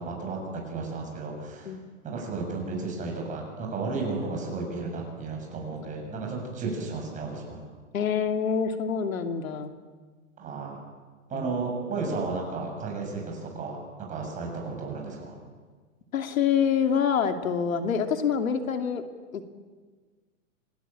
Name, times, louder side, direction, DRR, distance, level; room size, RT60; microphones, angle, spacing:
voice 1, 0.0-1.7 2.0-7.7 10.4-10.8 11.3-15.4, right 3 dB, 20° right, 1 dB, 7.0 m, -33 dB
voice 2, 7.9-9.7 11.3-11.5 16.1-19.0 19.3-19.5, left 7 dB, 85° left, 6 dB, 2.6 m, -26 dB
27.5 x 17.5 x 8.9 m, 1.5 s
hypercardioid pair, 155°, 40 cm